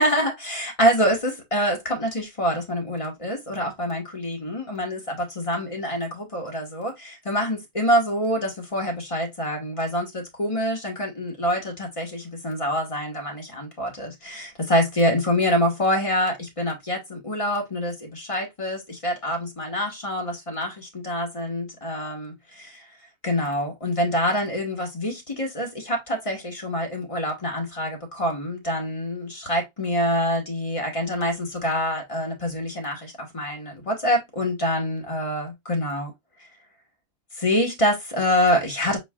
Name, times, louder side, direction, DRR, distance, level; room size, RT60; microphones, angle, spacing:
voice 1, 0.0-22.8 23.2-36.1 37.4-39.0, equal, 25° left, 1.6 m, -26 dB
4.5 x 4.5 x 2.4 m
omnidirectional pair, 1.5 m